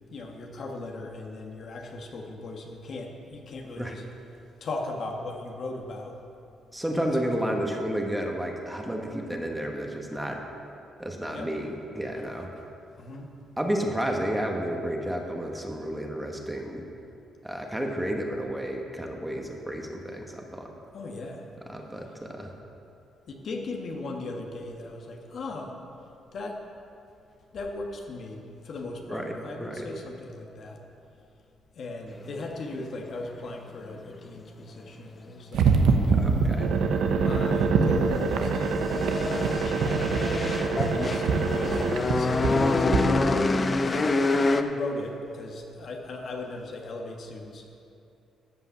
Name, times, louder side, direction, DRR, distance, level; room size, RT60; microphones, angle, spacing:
voice 1, 0.1-4.0 4.6-6.2 6.9-7.1 11.3-11.5 13.0-13.3 20.9-21.4 23.3-25.7 26.3-26.6 27.5-30.8 31.7-35.7 37.0-43.5 43.9-47.6, left 2 dB, 60° left, 1 dB, 1.4 m, -38 dB
voice 2, 6.7-10.4 11.0-12.5 13.6-16.9 17.4-20.7 21.7-22.5 29.1-29.9 36.1-36.7, right 1 dB, 5° right, 1 dB, 1.4 m, -31 dB
sound 1, 35.5-43.0, right 5 dB, 80° right, 1.0 m, -24 dB
sound 2, 37.0-44.6, left 3 dB, 30° left, 0.6 m, -27 dB
13.5 x 5.6 x 7.2 m, 2.6 s
cardioid pair, 90°, 0 cm